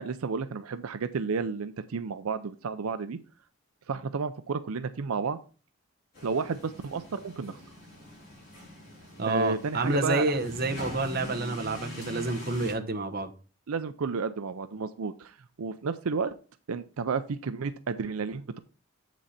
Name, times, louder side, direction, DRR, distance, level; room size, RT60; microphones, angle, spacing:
voice 1, 0.0-3.2 3.9-5.4 6.2-7.6 9.3-10.3 13.7-16.4 16.7-18.6, right 5 dB, 85° right, 12 dB, 0.5 m, -32 dB
sound 1, 6.1-12.7, left 1 dB, 45° left, 4.9 m, -43 dB
voice 2, 9.2-13.3, right 2 dB, 45° right, 5 dB, 0.9 m, -29 dB
7.9 x 6.1 x 4.1 m, 0.36 s
head